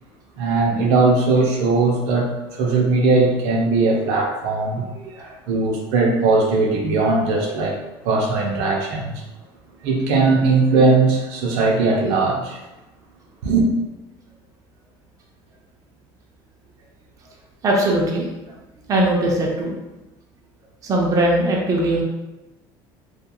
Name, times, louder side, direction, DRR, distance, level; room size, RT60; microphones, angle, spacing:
voice 1, 0.4-4.9 5.5-7.8 8.0-9.2 9.8-12.6 13.4-13.7, right 3 dB, 80° right, -1 dB, 0.6 m, -19 dB
voice 2, 5.0-5.3 5.7-5.8 17.6-18.3 18.9-19.7 20.8-22.0, right 1 dB, 30° right, -1 dB, 0.5 m, -20 dB
2.9 x 2.3 x 2.2 m, 1.0 s
cardioid pair, 130°, 11 cm